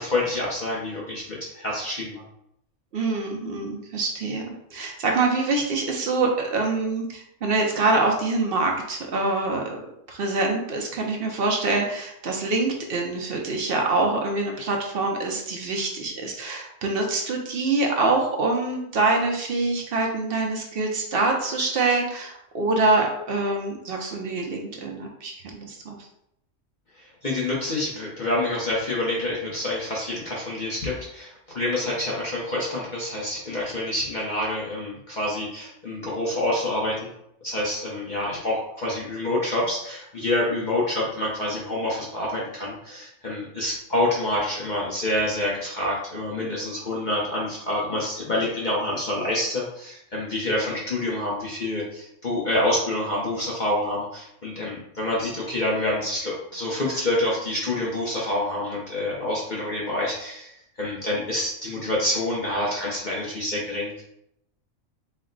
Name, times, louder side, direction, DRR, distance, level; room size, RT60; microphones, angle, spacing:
voice 1, 0.0-2.2 26.9-37.1 37.4-64.0, left 1 dB, 45° left, -5 dB, 0.8 m, -27 dB
voice 2, 2.9-9.8 10.1-26.0, right 3 dB, 55° right, 1 dB, 0.8 m, -25 dB
4.2 x 2.1 x 3.8 m, 0.76 s
omnidirectional pair, 1.3 m